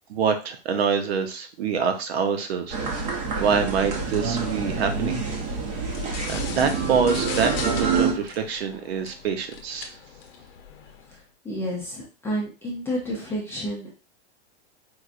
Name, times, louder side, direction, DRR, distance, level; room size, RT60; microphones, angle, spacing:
voice 1, 0.1-5.2 6.3-9.9, right 6 dB, 65° right, 7 dB, 0.8 m, -26 dB
sound 1, 2.7-8.1, right 5 dB, 20° right, 0.7 m, -27 dB
sound 2, 5.9-11.2, left 6 dB, 60° left, 0.8 m, -39 dB
voice 2, 11.4-14.1, equal, 5° left, -4 dB, 0.5 m, -30 dB
4.6 x 2.5 x 2.5 m, 0.33 s
hypercardioid pair, 150°, 33 cm